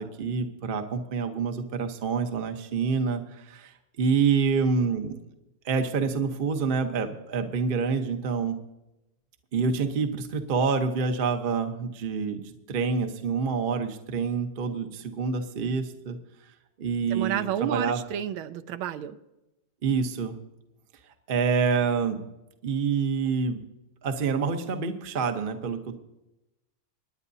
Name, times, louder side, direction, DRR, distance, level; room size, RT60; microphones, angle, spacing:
voice 1, 0.0-5.2 5.6-8.6 9.5-16.2 16.8-18.0 19.8-20.4 21.3-22.2 22.6-23.6 24.0-26.0, right 5 dB, 40° right, 6 dB, 0.8 m, -27 dB
voice 2, 17.1-19.2, right 10 dB, 80° right, 10 dB, 1.4 m, -31 dB
27.0 x 9.7 x 2.7 m, 0.96 s
omnidirectional pair, 2.3 m